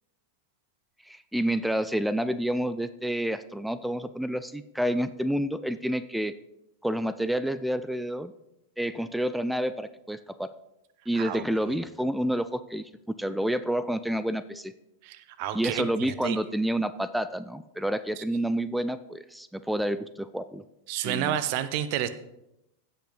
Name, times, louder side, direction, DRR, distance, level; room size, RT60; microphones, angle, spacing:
voice 1, 1.1-6.3 6.8-8.3 8.8-10.5 11.1-14.7 15.5-20.6 21.0-21.4, right 1 dB, ahead, 14 dB, 0.4 m, -29 dB
voice 2, 15.0-15.9 16.2-16.4 18.2-18.3 20.9-22.1, right 11 dB, 45° right, 13 dB, 0.7 m, -30 dB
16.0 x 5.5 x 4.0 m, 0.86 s
figure-of-eight pair, 90°, 0 cm